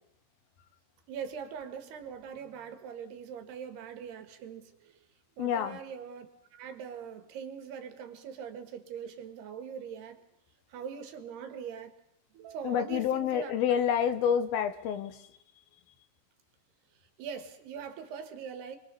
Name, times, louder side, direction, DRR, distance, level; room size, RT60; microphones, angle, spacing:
voice 1, 1.1-5.0 5.4-10.2 10.7-12.0 12.3-13.5 17.2-18.8, right 7 dB, 80° right, 8 dB, 3.9 m, -42 dB
voice 2, 5.4-5.8 12.6-15.2, left 8 dB, 75° left, 11 dB, 3.0 m, -28 dB
25.5 x 23.0 x 6.9 m, 0.73 s
omnidirectional pair, 4.6 m